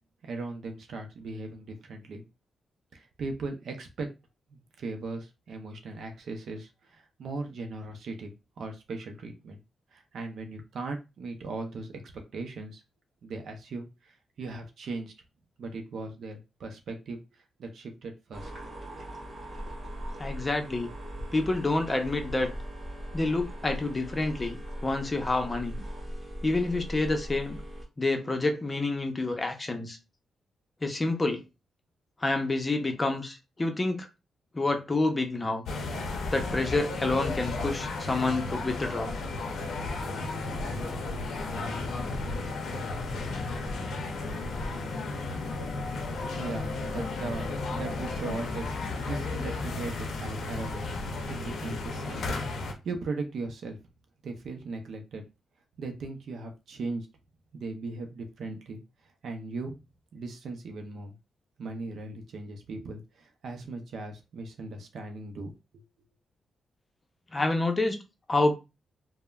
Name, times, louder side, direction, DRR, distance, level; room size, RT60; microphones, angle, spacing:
voice 1, 0.2-2.2 2.9-4.1 4.5-9.6 9.9-12.0 12.3-12.8 13.2-15.1 15.6-19.0 46.1-51.0 51.3-53.8 54.2-55.2 55.8-57.1 57.5-58.8 59.2-59.8 60.1-61.1 61.6-65.5, right 3 dB, 70° right, 0.4 m, -38 dB
sound 1, 18.3-27.8, equal, 30° right, 1.3 m, -39 dB
voice 2, 20.2-20.9 21.3-22.5 23.1-24.6 24.8-25.8 26.4-27.6 28.0-30.0 30.8-31.4 32.2-34.1 34.5-35.6 36.3-39.1 67.3-68.0 68.3-68.5, left 2 dB, 25° left, 0.5 m, -28 dB
sound 2, 35.7-52.7, left 3 dB, 80° left, 0.5 m, -33 dB
3.2 x 2.0 x 2.3 m
cardioid pair, 100°, 0 cm